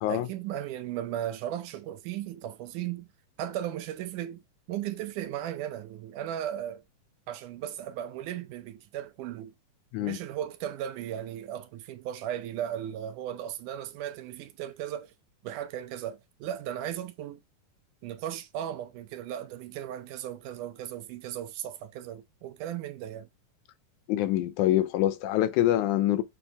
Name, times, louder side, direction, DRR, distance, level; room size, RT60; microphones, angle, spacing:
voice 1, 0.1-3.1 3.4-4.4 4.7-6.8 7.3-9.5 10.0-15.1 15.4-17.4 18.0-23.3, right 11 dB, 80° right, 2.0 m, -36 dB
voice 2, 24.1-26.2, left 13 dB, 80° left, 1.9 m, -25 dB
7.1 x 3.3 x 4.6 m
omnidirectional pair, 3.8 m